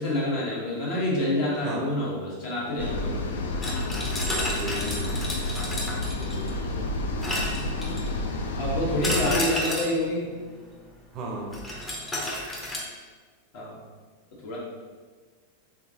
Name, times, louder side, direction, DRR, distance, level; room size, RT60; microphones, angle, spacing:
voice 1, 0.0-3.3 6.5-6.8 8.6-10.3 13.5-13.8 14.4-14.6, left 1 dB, 45° left, -6 dB, 1.3 m, -27 dB
voice 2, 1.6-2.0 3.9-5.2 6.2-6.6 7.7-8.2 11.1-11.6, right 1 dB, 35° right, 1 dB, 0.5 m, -37 dB
sound 1, 2.8-9.4, left 2 dB, 65° left, 0.4 m, -30 dB
sound 2, 3.6-6.6 7.2-8.2 9.0-10.0 11.5-12.8, left 1 dB, 15° left, 0.8 m, -31 dB
3.7 x 3.6 x 2.7 m, 1.5 s
figure-of-eight pair, 90°, 0 cm